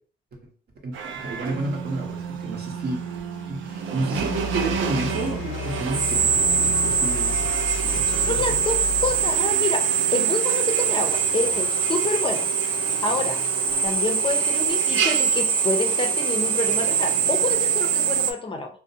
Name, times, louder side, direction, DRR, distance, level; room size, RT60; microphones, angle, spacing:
voice 1, 0.8-3.0 3.5-7.4 7.8-8.6, right 2 dB, 55° right, 1 dB, 0.8 m, -31 dB
Drill, 0.9-18.3, right 7 dB, 75° right, 0.4 m, -24 dB
sound 1, 4.1-17.5, left 4 dB, 85° left, 0.5 m, -37 dB
voice 2, 8.3-12.8 13.0-13.4 13.8-18.7, left 3 dB, 25° left, 3 dB, 0.5 m, -28 dB
2.5 x 2.0 x 2.6 m, 0.41 s
cardioid pair, 90°, 20 cm